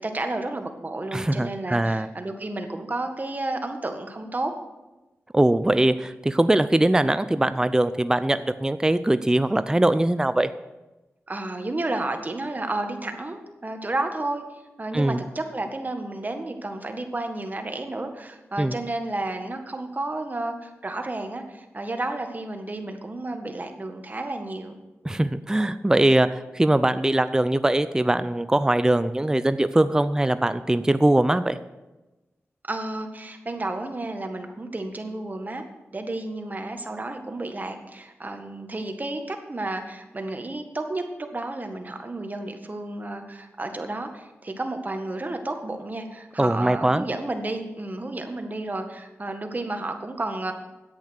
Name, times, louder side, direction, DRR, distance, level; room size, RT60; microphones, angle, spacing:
voice 1, 0.0-4.5 11.3-14.4 14.8-24.7 32.7-35.6 35.9-50.5, right 2 dB, 35° right, 5 dB, 1.6 m, -31 dB
voice 2, 1.1-2.1 5.3-10.5 14.9-15.2 18.6-18.7 25.0-31.6 46.4-47.0, right 1 dB, 15° right, 12 dB, 0.5 m, -21 dB
10.5 x 8.4 x 6.6 m, 1.1 s
cardioid pair, 55°, 5 cm